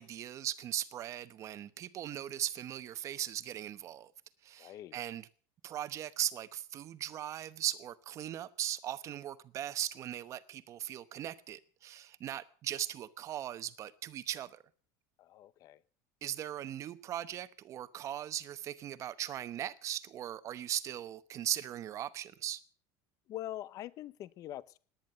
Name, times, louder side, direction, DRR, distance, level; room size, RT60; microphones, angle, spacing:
voice 1, 0.0-4.1 4.4-5.3 5.6-14.6 16.2-22.6, right 11 dB, 35° right, 0.9 m, -39 dB
voice 2, 4.6-5.0 15.2-15.8 23.3-24.8, left 13 dB, 40° left, 0.7 m, -44 dB
18.5 x 10.5 x 6.7 m
cardioid pair, 165°, 9 cm